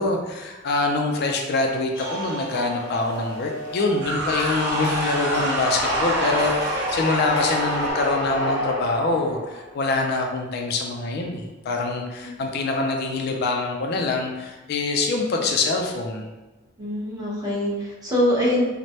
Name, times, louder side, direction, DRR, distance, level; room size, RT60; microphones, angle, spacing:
voice 1, 0.0-16.3, left 3 dB, 55° left, 2 dB, 0.3 m, -25 dB
sound 1, 1.9-7.9, equal, 85° left, 0.7 m, -34 dB
sound 2, 4.0-9.8, equal, 65° right, 0.9 m, -26 dB
voice 2, 16.8-18.6, left 1 dB, 20° right, -6 dB, 0.8 m, -24 dB
3.1 x 2.0 x 2.7 m, 1.2 s
head